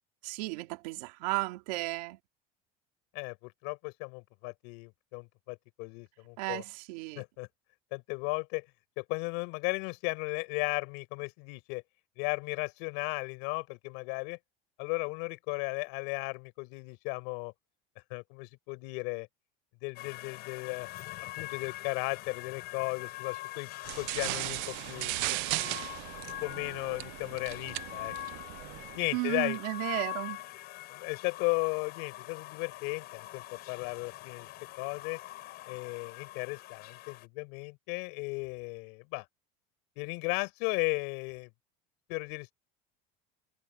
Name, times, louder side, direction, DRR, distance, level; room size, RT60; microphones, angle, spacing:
voice 1, 0.2-2.2 6.4-7.2 29.1-30.4, right 22 dB, 85° right, 2.4 m, -34 dB
voice 2, 3.1-6.6 7.2-7.5 7.9-8.7 9.0-11.8 12.2-14.4 14.8-17.5 18.1-19.3 19.8-20.9 21.4-23.7 24.0-25.9 26.4-28.1 28.9-29.6 30.9-34.5 34.8-35.2 35.7-39.3 40.0-41.5 42.1-42.5, left 32 dB, 75° left, 5.3 m, -35 dB
sound 1, 20.0-37.3, left 17 dB, 55° left, 7.2 m, -44 dB
sound 2, 23.8-29.1, right 25 dB, 65° right, 0.5 m, -37 dB
cardioid pair, 145°, 20 cm